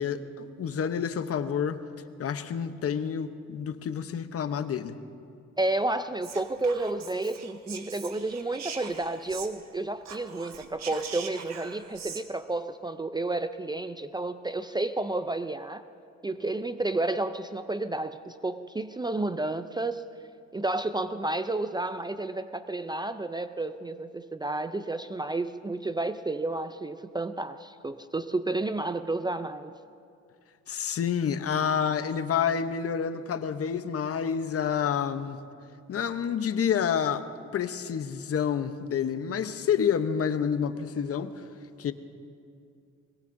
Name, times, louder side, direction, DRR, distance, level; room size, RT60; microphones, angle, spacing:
voice 1, 0.0-1.8 2.2-5.0 30.7-35.4 35.9-37.2 37.5-41.3 41.8-41.9, left 7 dB, 50° left, 10 dB, 0.8 m, -28 dB
voice 2, 5.6-15.8 16.2-20.0 20.5-29.7, right 2 dB, 15° right, 11 dB, 0.4 m, -31 dB
Whispering, 6.2-9.7 10.0-12.2, right 7 dB, 65° right, 1.2 m, -42 dB
22.0 x 21.5 x 2.6 m, 2.5 s
cardioid pair, 90°, 30 cm